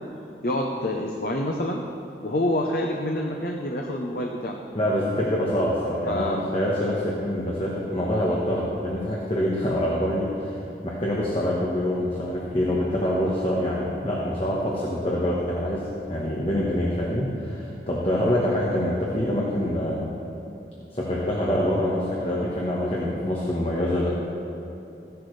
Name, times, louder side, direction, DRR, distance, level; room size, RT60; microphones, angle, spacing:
voice 1, 0.4-1.8 2.2-4.6 6.1-6.5, left 1 dB, 55° left, 1 dB, 0.7 m, -27 dB
voice 2, 4.7-10.6 10.8-20.0 20.9-24.1, left 1 dB, 30° left, -5 dB, 1.2 m, -25 dB
15.0 x 10.5 x 3.3 m, 3.0 s
head